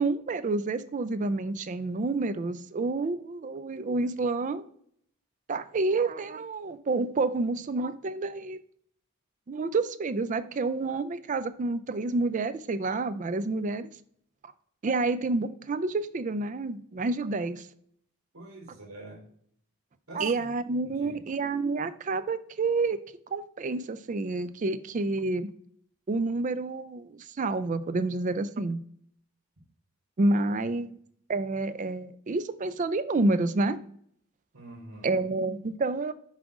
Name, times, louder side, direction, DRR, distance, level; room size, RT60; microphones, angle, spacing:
voice 1, 0.0-4.7 5.5-8.6 9.5-13.9 14.8-17.7 20.1-23.0 23.3-25.5 26.1-28.8 30.2-31.0 31.3-33.8 35.0-36.1, right 3 dB, 35° right, 13 dB, 0.4 m, -29 dB
voice 2, 18.3-19.2 20.1-20.5 20.8-21.2 30.5-30.9 34.5-35.2, right 1 dB, 70° right, 0 dB, 3.1 m, -46 dB
7.4 x 3.6 x 4.8 m, 0.65 s
head